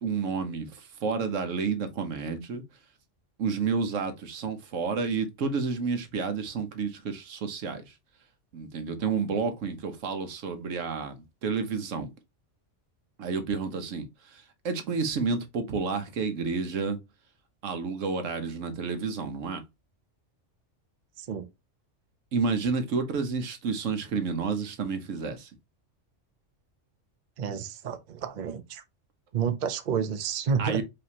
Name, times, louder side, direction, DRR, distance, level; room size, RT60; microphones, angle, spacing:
voice 1, 0.0-2.6 3.4-7.8 8.5-11.2 11.4-12.1 13.2-17.0 17.6-19.6 22.3-25.5 30.6-30.8, right 5 dB, 80° right, 1.2 m, -30 dB
voice 2, 27.4-28.8 29.3-30.8, right 6 dB, 50° right, 0.6 m, -30 dB
5.1 x 2.9 x 2.8 m
omnidirectional pair, 1.3 m